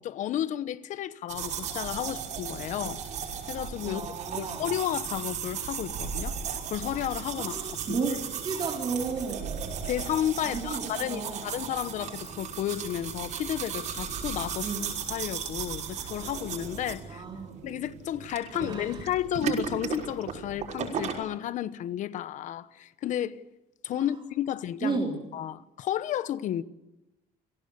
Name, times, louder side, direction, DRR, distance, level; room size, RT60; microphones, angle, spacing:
voice 1, 0.0-3.0 3.5-4.0 4.3-7.5 7.9-8.0 9.9-14.8 15.1-17.2 17.6-23.4 23.8-25.0 25.3-26.6, left 11 dB, 50° left, 1.0 m, -32 dB
Escova de dente, 1.3-21.2, right 7 dB, 50° right, 5.8 m, -36 dB
voice 2, 3.8-4.6 7.4-8.1 8.4-9.7 10.4-11.4 14.6-14.8 17.1-17.5 18.5-19.0 23.9-24.1 24.8-25.3, right 4 dB, 30° right, 3.4 m, -33 dB
28.5 x 18.0 x 7.0 m
cardioid pair, 155°, 16 cm